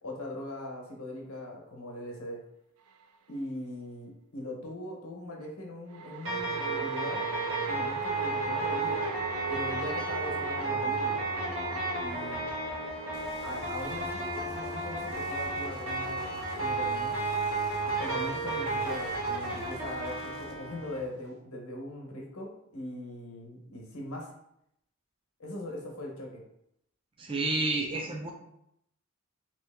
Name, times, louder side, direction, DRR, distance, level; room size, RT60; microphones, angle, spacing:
voice 1, 0.0-2.4 3.3-7.2 7.7-9.0 9.5-11.2 12.0-12.4 13.4-17.2 17.8-24.3 25.4-26.4, left 1 dB, 80° left, 0 dB, 1.0 m, -40 dB
sound 1, 2.9-3.0 5.9-17.3, right 7 dB, 90° right, 0.3 m, -40 dB
sound 2, 6.2-21.0, right 2 dB, 70° right, 1.3 m, -33 dB
sound 3, 13.1-20.5, left 2 dB, 25° left, 0.6 m, -53 dB
voice 2, 27.2-28.3, right 2 dB, 25° right, 0 dB, 0.4 m, -30 dB
3.0 x 3.0 x 3.4 m, 0.77 s
head